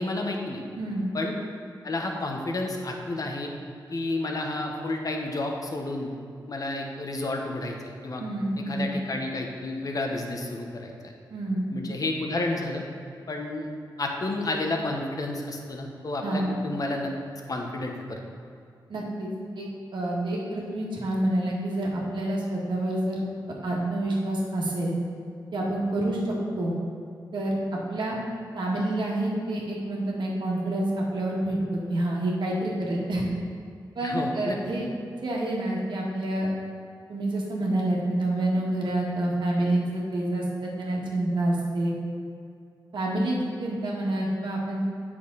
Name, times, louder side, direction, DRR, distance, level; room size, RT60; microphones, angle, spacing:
voice 1, 0.0-0.6 1.1-1.3 1.8-3.5 3.9-6.1 6.5-8.2 8.7-11.1 11.7-12.8 13.3-13.7 14.0-17.1 17.5-18.2 34.0-34.6, left 2 dB, 50° left, 1 dB, 1.1 m, -31 dB
voice 2, 0.8-1.1 8.2-8.9 11.3-11.6 16.2-16.5 18.9-19.3 19.5-23.2 23.6-24.9 25.5-26.8 27.3-27.5 27.9-28.2 28.5-33.3 33.9-34.9 35.2-36.5 37.1-41.9 42.9-44.8, right 1 dB, 70° right, -3 dB, 1.7 m, -28 dB
8.3 x 6.1 x 4.0 m, 2.5 s
cardioid pair, 70°, 8 cm